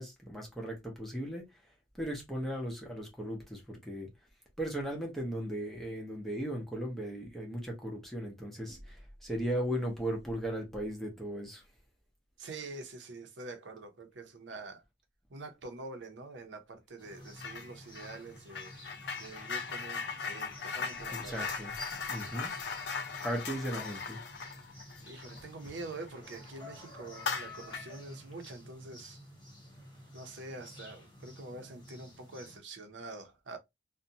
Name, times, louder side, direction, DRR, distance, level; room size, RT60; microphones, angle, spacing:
voice 1, 0.0-1.4 2.0-4.1 4.6-11.6 21.1-22.5 23.2-24.2, equal, ahead, 0.8 m, -37 dB
voice 2, 12.4-14.8 15.3-18.8 19.2-21.5 25.1-29.2 30.1-33.6, right 3 dB, 85° right, 0.6 m, -46 dB
sound 1, 17.0-32.6, left 1 dB, 25° left, 1.1 m, -51 dB
sound 2, 17.4-17.7 18.0-26.1 26.5-26.6 27.1-28.0, left 5 dB, 70° left, 0.5 m, -39 dB
2.5 x 2.1 x 2.7 m
head